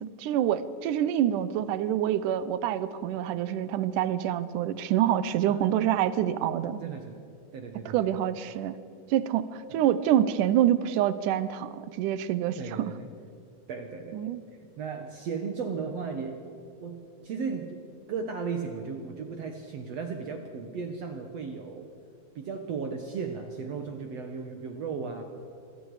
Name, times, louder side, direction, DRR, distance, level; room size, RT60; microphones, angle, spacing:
voice 1, 0.0-6.8 7.9-8.8 9.1-12.6 14.1-14.4, right 11 dB, 75° right, 14 dB, 2.3 m, -26 dB
voice 2, 5.5-6.0 6.8-7.2 7.5-8.1 9.7-9.8 12.6-13.1 13.7-14.4 14.8-16.5 16.8-17.8 18.1-21.9 22.4-25.2, right 5 dB, 60° right, 5 dB, 2.1 m, -36 dB
28.0 x 22.5 x 4.9 m, 2.4 s
omnidirectional pair, 3.8 m